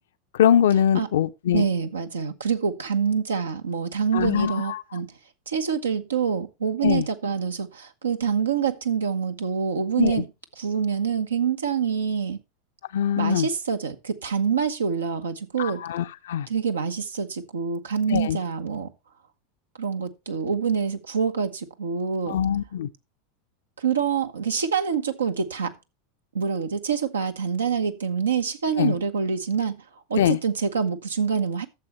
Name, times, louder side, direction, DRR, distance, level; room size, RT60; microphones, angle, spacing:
voice 1, 0.4-1.7 4.1-4.8 6.8-7.1 10.0-10.2 12.9-13.5 15.6-16.5 18.1-18.4 22.3-22.9 28.8-28.9 30.2-30.4, left 9 dB, 65° left, 0.7 m, -22 dB
voice 2, 1.5-5.1 5.5-10.3 10.6-12.4 13.2-15.8 16.5-18.9 19.8-22.4 23.8-25.7 26.3-29.8 30.1-31.7, right 6 dB, 80° right, 1.1 m, -26 dB
12.0 x 7.3 x 3.1 m
figure-of-eight pair, 85°, 0 cm